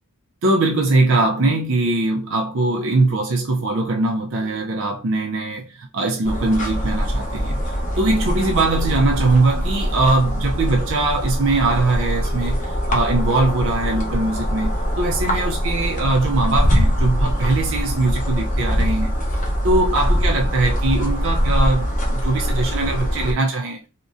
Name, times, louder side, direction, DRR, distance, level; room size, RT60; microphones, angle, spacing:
voice 1, 0.4-19.1 19.6-23.9, right 2 dB, 65° right, 0.5 m, -21 dB
sound 1, 6.3-23.3, equal, 35° left, 0.8 m, -22 dB
3.6 x 2.1 x 2.5 m
head